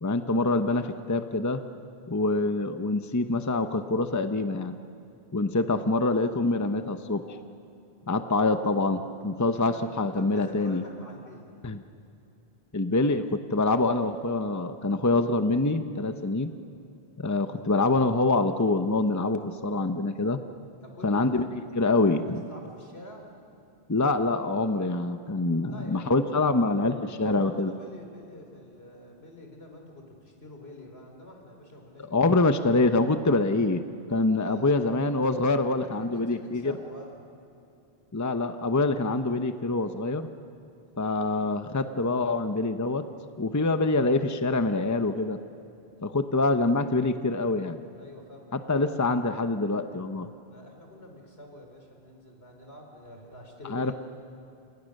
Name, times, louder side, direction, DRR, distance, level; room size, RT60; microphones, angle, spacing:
voice 1, 0.0-1.6 2.1-4.8 5.3-7.4 8.1-10.8 11.6-11.8 12.7-16.5 17.2-20.4 21.0-21.4 21.7-22.4 23.9-27.7 32.1-33.8 34.1-36.7 38.1-40.3 41.0-43.0 43.4-45.4 46.0-47.8 48.5-50.3 53.7-53.9, left 2 dB, 20° left, 9 dB, 0.8 m, -25 dB
voice 2, 9.2-11.5 20.8-21.5 21.9-23.3 25.7-26.7 27.2-32.5 34.3-35.0 35.3-37.2 48.0-49.0 50.5-53.9, left 1 dB, 75° left, 2 dB, 4.3 m, -47 dB
29.5 x 26.5 x 6.6 m, 2.8 s
omnidirectional pair, 1.1 m